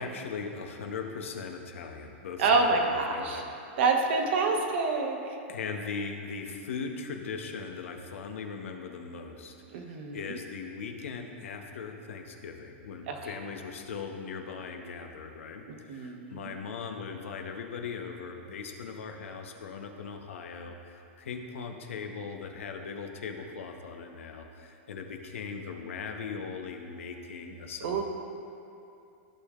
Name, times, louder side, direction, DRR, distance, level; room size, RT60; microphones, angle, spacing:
voice 1, 0.0-3.4 5.5-28.0, left 5 dB, 85° left, 4 dB, 1.0 m, -39 dB
voice 2, 2.4-3.4 3.8-5.4 9.7-10.2 13.1-13.2 15.9-16.5 27.8-28.0, right 4 dB, 55° right, 2 dB, 1.1 m, -27 dB
14.5 x 6.6 x 2.5 m, 2.8 s
supercardioid pair, 160°, 7 cm